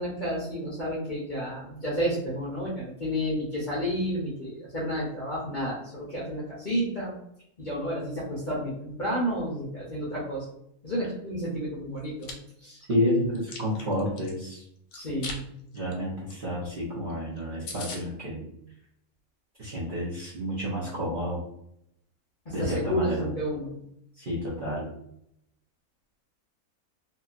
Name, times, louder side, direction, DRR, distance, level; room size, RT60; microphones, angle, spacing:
voice 1, 0.0-7.1 7.6-10.4 10.8-12.3 12.6-12.8 14.9-15.5 22.4-23.8, equal, 40° left, -7 dB, 0.7 m, -31 dB
Chewing mastication, 12.0-12.3 12.8-14.3 14.9-15.4 15.7-15.9 16.3-16.4 16.6-16.7 17.1-17.2 17.4-17.5 17.7-18.0, left 4 dB, 75° left, 1.0 m, -39 dB
voice 2, 12.9-14.6 15.7-18.4 19.6-21.4 22.5-23.3 24.2-24.9, equal, 45° right, -7 dB, 0.7 m, -30 dB
2.9 x 2.8 x 2.4 m, 0.75 s
omnidirectional pair, 1.6 m